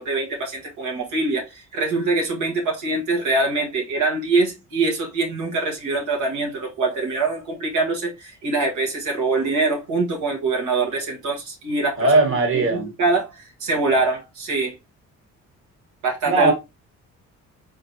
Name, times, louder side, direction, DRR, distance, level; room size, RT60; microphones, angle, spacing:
voice 1, 0.0-12.1 12.5-14.7 16.0-16.5, right 3 dB, 80° right, 1.4 m, -24 dB
voice 2, 12.0-12.9 16.2-16.5, right 2 dB, 45° right, 1.6 m, -18 dB
3.8 x 3.7 x 2.8 m
cardioid pair, 90°, 30 cm